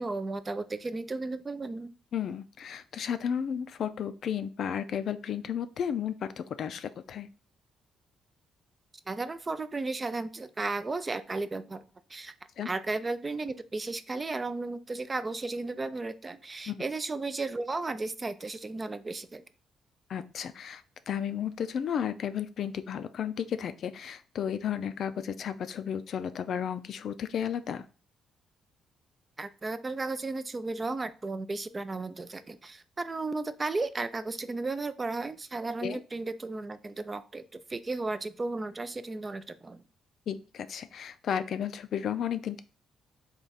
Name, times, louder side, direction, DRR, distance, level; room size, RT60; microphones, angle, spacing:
voice 1, 0.0-1.9 9.1-11.8 12.1-12.3 12.6-19.4 29.4-37.4 37.7-39.8, right 3 dB, 25° right, 12 dB, 0.3 m, -34 dB
voice 2, 2.1-7.3 12.6-12.7 16.7-16.8 20.1-27.9 35.8-36.0 40.3-42.6, left 8 dB, 60° left, 11 dB, 0.3 m, -33 dB
3.6 x 2.3 x 4.0 m, 0.35 s
cardioid pair, 90°, 0 cm